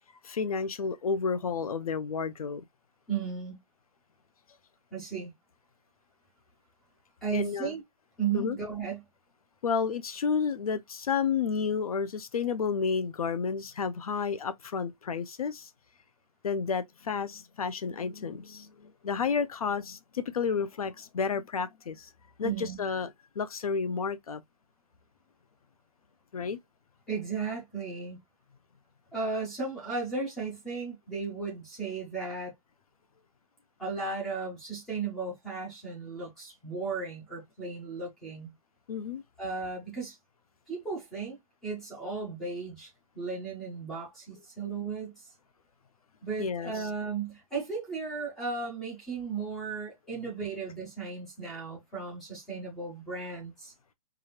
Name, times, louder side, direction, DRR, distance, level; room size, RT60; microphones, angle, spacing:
voice 1, 0.2-2.6 7.3-7.7 8.3-8.6 9.6-15.7 16.4-22.1 22.4-24.4 26.3-26.6 38.9-39.2 46.4-46.9, left 5 dB, 70° left, 0.6 m, -31 dB
voice 2, 3.1-3.6 4.9-5.3 7.2-7.8 8.2-9.0 22.4-22.8 27.1-28.2 29.1-32.5 33.8-38.5 39.4-40.2 40.7-41.4 41.6-45.3 46.2-53.7, right 4 dB, ahead, 0.4 m, -35 dB
4.8 x 2.4 x 3.0 m
hypercardioid pair, 175°, 19 cm